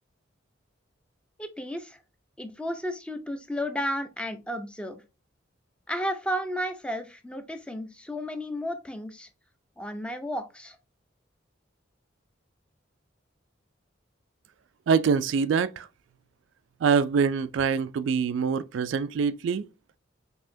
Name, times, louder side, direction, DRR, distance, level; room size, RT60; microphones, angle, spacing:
voice 1, 1.4-2.0 2.4-5.0 5.9-9.3 9.8-10.8, equal, 5° left, 0.5 m, -33 dB
voice 2, 14.9-15.9 16.8-19.7, right 6 dB, 70° right, 0.3 m, -24 dB
5.4 x 2.8 x 2.6 m
head